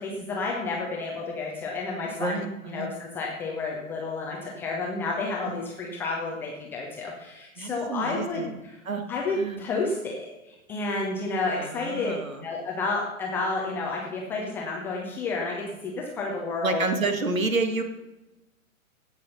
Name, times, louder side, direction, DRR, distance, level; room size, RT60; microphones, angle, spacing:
voice 1, 0.0-8.8 9.1-12.1 12.4-16.8, left 3 dB, 5° left, -2 dB, 0.4 m, -31 dB
voice 2, 2.2-2.9 5.4-5.5 7.6-8.6 8.9-9.0 9.4-9.6 11.6-12.5 16.6-17.8, right 3 dB, 70° right, 7 dB, 1.9 m, -29 dB
16.5 x 6.2 x 5.5 m, 1.0 s
figure-of-eight pair, 115°, 43 cm